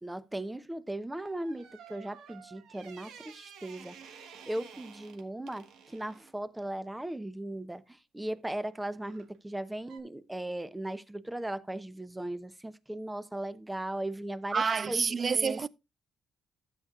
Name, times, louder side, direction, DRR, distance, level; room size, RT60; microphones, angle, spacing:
voice 1, 0.0-15.0 15.3-15.6, right 1 dB, 10° right, 0.8 m, -38 dB
sound 1, 1.1-6.3 9.1-9.4 9.9-10.0, right 7 dB, 85° right, 1.3 m, -52 dB
voice 2, 14.5-15.7, right 5 dB, 40° right, 0.4 m, -28 dB
12.5 x 8.3 x 2.4 m
cardioid pair, 90°, 0 cm